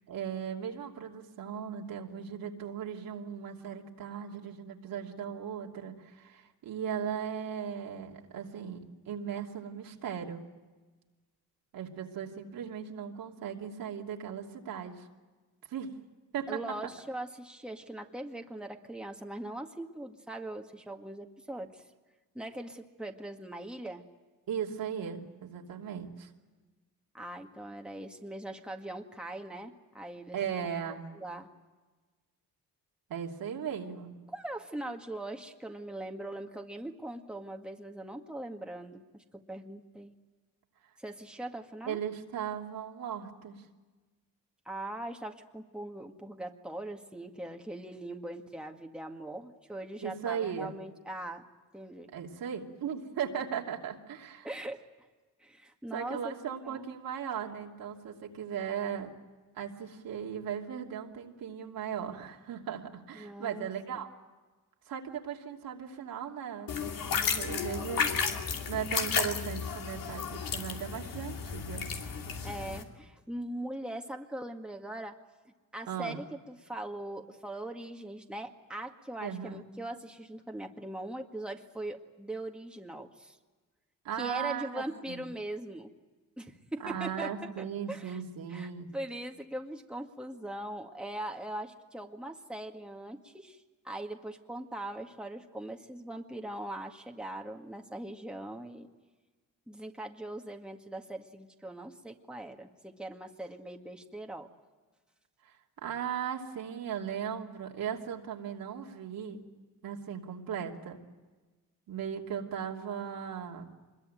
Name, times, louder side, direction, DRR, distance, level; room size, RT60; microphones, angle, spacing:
voice 1, 0.1-10.4 11.7-15.1 15.7-16.0 16.3-16.9 24.5-26.3 30.3-31.1 33.1-34.1 41.9-43.6 50.0-50.8 52.1-54.5 55.9-59.1 59.5-64.1 64.9-71.9 75.9-76.2 79.2-79.7 84.0-85.3 86.8-88.9 105.4-109.4 109.8-111.0 111.9-113.7, right 8 dB, 80° right, 0 dB, 3.0 m, -37 dB
voice 2, 16.5-21.8 22.3-24.0 27.1-30.4 31.1-31.5 34.3-40.1 41.0-42.0 44.7-51.4 51.7-52.1 54.4-54.9 55.4-56.2 56.5-56.9 63.1-64.1 72.4-75.2 75.7-83.4 84.2-85.9 86.4-88.2 88.5-98.9 99.7-104.5, right 1 dB, 5° right, 2 dB, 1.9 m, -41 dB
sound 1, 66.7-72.8, left 6 dB, 70° left, 2.8 m, -33 dB
25.0 x 21.5 x 9.1 m, 1.3 s
cardioid pair, 85°, 35 cm